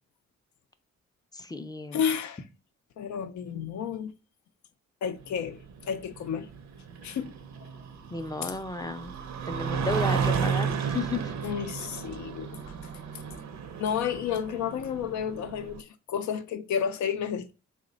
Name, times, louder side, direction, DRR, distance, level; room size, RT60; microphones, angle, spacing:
voice 1, 1.3-2.0 8.1-9.2 9.5-11.3, left 3 dB, 15° left, 0.4 m, -33 dB
voice 2, 1.9-2.4 3.0-4.1 5.0-6.5 7.0-7.3 8.4-8.5 11.4-12.6 13.8-17.5, left 8 dB, 70° left, 0.4 m, -31 dB
sound 1, 5.2-15.8, right 6 dB, 60° right, 0.6 m, -33 dB
3.1 x 2.1 x 3.8 m
cardioid pair, 60°, 31 cm